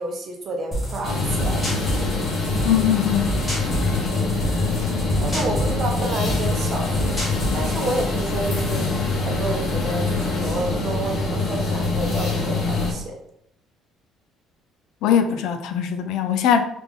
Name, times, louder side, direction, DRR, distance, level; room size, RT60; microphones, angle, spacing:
voice 1, 0.0-2.1 4.1-4.2 5.2-8.9 9.2-13.1, right 2 dB, 35° right, 0.7 m, -30 dB
sound 1, 0.7-8.1, equal, 10° left, 1.1 m, -29 dB
sound 2, 1.0-12.9, left 3 dB, 40° left, 0.8 m, -24 dB
voice 2, 2.6-3.4 15.0-16.6, left 9 dB, 65° left, 0.3 m, -21 dB
3.3 x 2.4 x 3.5 m
cardioid pair, 175°, 0 cm